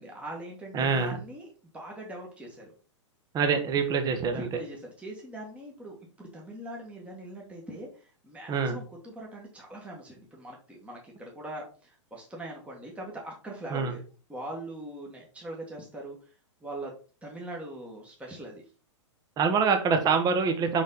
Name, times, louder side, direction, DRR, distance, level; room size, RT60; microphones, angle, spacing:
voice 1, 0.0-2.7 4.3-14.0 14.3-16.2 16.6-16.9 17.2-18.6, right 1 dB, 10° right, -1 dB, 1.5 m, -41 dB
voice 2, 0.7-1.2 3.3-4.5 8.5-8.8 13.7-13.9 19.4-20.8, right 5 dB, 25° right, 6 dB, 1.2 m, -25 dB
5.3 x 5.1 x 4.0 m, 0.37 s
hypercardioid pair, 120°, 16 cm